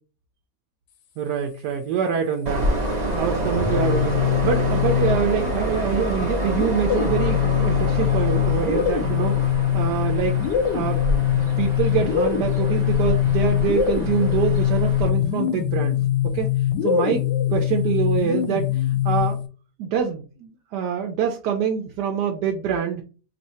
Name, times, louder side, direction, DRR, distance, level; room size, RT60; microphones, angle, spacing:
voice 1, 1.2-2.9 3.2-10.4 10.7-11.0 11.6-16.0 16.3-16.5 16.8-17.2 17.5-19.4 19.8-23.0, right 7 dB, 75° right, 3 dB, 1.1 m, -25 dB
Train, 2.4-15.1, equal, 55° right, 0.4 m, -27 dB
sound 1, 3.4-5.6 6.5-19.5, left 11 dB, 85° left, 1.3 m, -22 dB
3.2 x 2.7 x 4.2 m, 0.36 s
omnidirectional pair, 1.9 m